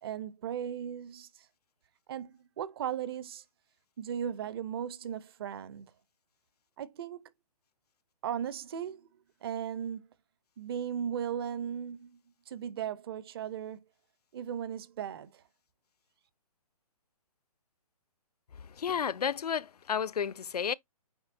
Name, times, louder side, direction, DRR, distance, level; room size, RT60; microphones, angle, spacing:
voice 1, 0.0-1.5 2.1-3.4 4.0-5.9 6.8-7.3 8.2-9.1 9.4-10.1 10.6-12.2 12.5-13.8 14.3-15.4, right 9 dB, 40° right, 0.8 m, -37 dB
voice 2, 18.7-20.7, left 7 dB, 90° left, 0.6 m, -32 dB
8.0 x 4.7 x 2.7 m
hypercardioid pair, 155°, 20 cm